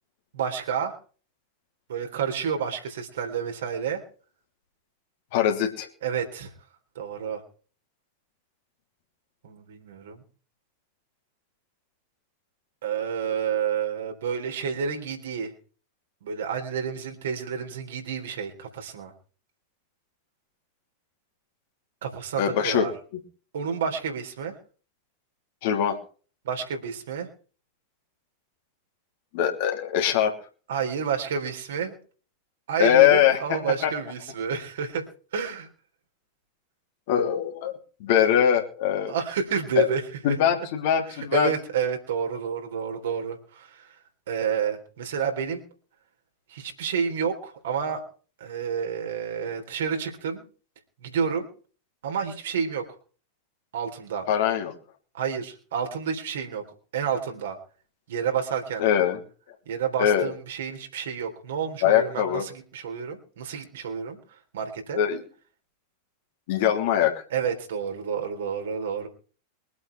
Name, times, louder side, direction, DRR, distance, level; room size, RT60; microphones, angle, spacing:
voice 1, 0.3-1.0 1.9-4.0 6.0-6.5 7.0-7.4 9.4-10.2 12.8-15.5 16.2-19.1 22.0-22.9 23.5-24.5 26.5-27.3 30.7-31.9 32.7-35.1 35.3-35.7 38.1-38.3 39.1-40.0 40.3-40.4 41.1-44.0 44.3-45.6 46.5-48.0 48.4-50.4 51.0-51.5 52.0-52.9 53.7-54.3 55.1-56.6 56.9-57.6 58.1-58.9 59.7-64.2 64.5-65.0 67.3-69.1, right 7 dB, 60° right, 4 dB, 3.6 m, -29 dB
voice 2, 5.3-5.9 22.4-22.8 25.6-26.0 29.3-30.3 32.8-33.9 37.1-37.7 38.0-39.1 39.8-39.9 40.2-41.5 54.3-54.7 58.8-59.2 60.0-60.3 61.8-62.4 64.9-65.2 66.5-67.1, left 10 dB, 50° left, 3 dB, 3.1 m, -22 dB
23.5 x 8.6 x 4.6 m, 0.40 s
figure-of-eight pair, 90°, 0 cm